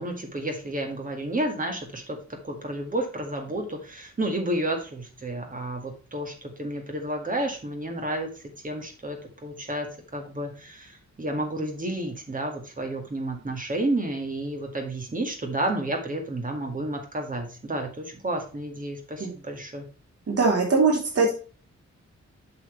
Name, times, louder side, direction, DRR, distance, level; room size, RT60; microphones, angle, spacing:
voice 1, 0.0-2.2 2.4-19.9, right 1 dB, 30° right, 3 dB, 1.9 m, -31 dB
voice 2, 20.3-21.3, right 4 dB, 55° right, -1 dB, 3.4 m, -21 dB
7.9 x 7.2 x 3.3 m, 0.36 s
wide cardioid pair, 160°, 29 cm